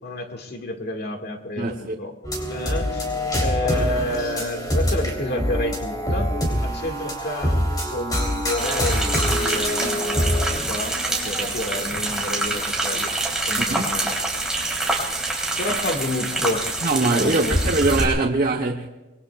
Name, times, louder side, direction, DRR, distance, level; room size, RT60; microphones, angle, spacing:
voice 1, 0.0-2.1 2.5-3.1 3.4-6.3 6.6-13.1 13.5-14.2 15.6-17.5, left 1 dB, 60° left, 1.9 m, -30 dB
voice 2, 1.6-2.1 13.7-13.8 16.8-18.9, right 3 dB, 50° right, 1.0 m, -22 dB
sound 1, 2.2-10.5, equal, 20° left, 3.3 m, -25 dB
sound 2, 8.6-18.1, right 2 dB, 5° right, 3.5 m, -26 dB
26.0 x 21.0 x 2.4 m
head